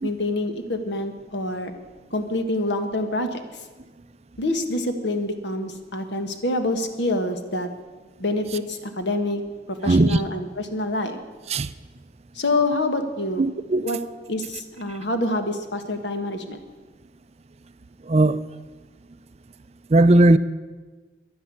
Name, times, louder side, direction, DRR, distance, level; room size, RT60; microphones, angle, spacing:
voice 1, 0.0-1.7 2.1-3.4 4.4-7.7 8.2-9.4 9.7-11.2 12.3-13.4 13.8-14.0 14.3-16.6, left 2 dB, 70° left, 7 dB, 1.5 m, -26 dB
voice 2, 9.8-10.2 11.5-11.7 13.4-13.9 18.1-18.4 19.9-20.4, right 2 dB, 35° right, 13 dB, 0.4 m, -17 dB
11.0 x 10.0 x 9.6 m, 1.3 s
head